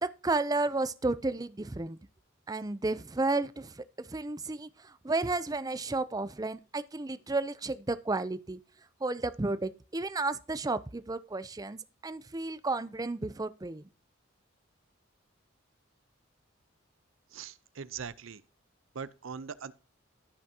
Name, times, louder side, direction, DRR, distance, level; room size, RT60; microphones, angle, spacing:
voice 1, 0.0-2.0 2.5-8.6 9.0-13.8, right 3 dB, 20° right, 0.5 m, -32 dB
voice 2, 17.3-18.4 18.9-19.7, right 6 dB, 80° right, 0.6 m, -41 dB
15.0 x 6.1 x 2.8 m
head